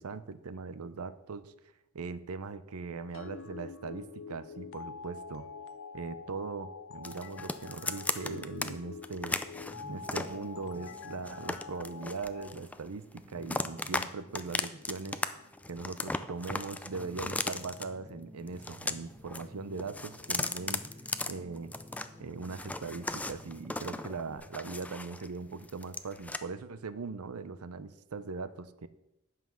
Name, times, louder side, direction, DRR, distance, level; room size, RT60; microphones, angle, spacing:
voice 1, 0.0-1.5 1.9-5.5 5.9-9.4 9.9-15.2 15.7-20.8 21.3-21.7 22.2-28.9, right 4 dB, 80° right, 14 dB, 0.6 m, -40 dB
sound 1, 3.1-12.5, left 5 dB, 60° left, 0.5 m, -45 dB
sound 2, 7.0-8.7 9.0-10.4 10.9-12.9 13.2-14.1 14.3-15.3 15.5-17.8 18.5-19.4 19.7-22.1 22.4-25.3 25.6-26.4, left 2 dB, 5° left, 0.4 m, -36 dB
sound 3, 9.6-24.4, equal, 20° right, 1.9 m, -53 dB
9.4 x 5.7 x 6.2 m, 0.89 s
head